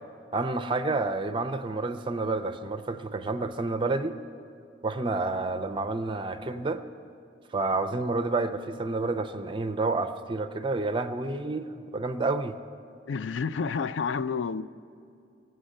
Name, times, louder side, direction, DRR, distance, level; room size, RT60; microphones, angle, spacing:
voice 1, 0.3-4.1 4.8-6.8 7.5-11.7 11.9-12.6, right 3 dB, 25° right, 10 dB, 0.4 m, -29 dB
voice 2, 13.1-14.6, left 5 dB, 80° left, 14 dB, 0.4 m, -29 dB
18.0 x 7.9 x 6.5 m, 2.5 s
head